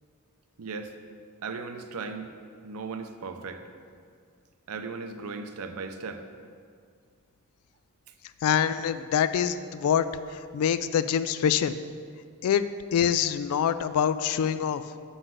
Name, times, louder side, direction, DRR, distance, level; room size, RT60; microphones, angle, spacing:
voice 1, 0.6-0.9 1.4-2.3 2.6-3.6 4.7-6.2, right 4 dB, 85° right, 7 dB, 0.6 m, -37 dB
voice 2, 8.4-10.1 10.5-11.8 12.4-12.6 12.9-14.8, left 8 dB, 80° left, 14 dB, 0.3 m, -25 dB
7.9 x 3.9 x 6.3 m, 2.2 s
head